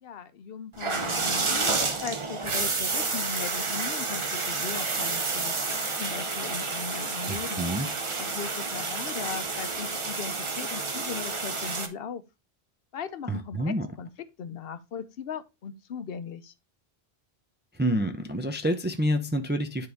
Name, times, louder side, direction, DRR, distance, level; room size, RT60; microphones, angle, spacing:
voice 1, 0.0-7.7 8.2-12.2 12.9-14.1 14.4-16.5, left 6 dB, 70° left, 0.8 m, -38 dB
sound 1, 0.7-11.9, right 3 dB, 30° right, 0.8 m, -30 dB
voice 2, 7.3-7.9 13.3-13.9 17.7-19.9, equal, 15° right, 0.4 m, -28 dB
9.5 x 3.8 x 3.4 m
omnidirectional pair, 1.1 m